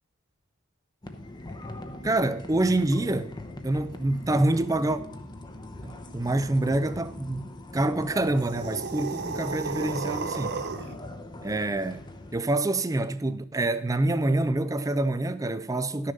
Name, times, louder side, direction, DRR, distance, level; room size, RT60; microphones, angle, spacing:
sound 1, 1.0-12.4, left 1 dB, 20° left, 0.8 m, -41 dB
voice 1, 2.0-3.4 3.6-5.0 5.8-10.6 11.4-12.1 12.3-16.1, right 2 dB, 15° right, 0.5 m, -26 dB
sound 2, 8.3-11.0, right 4 dB, 50° right, 0.7 m, -33 dB
12.0 x 6.6 x 5.3 m
head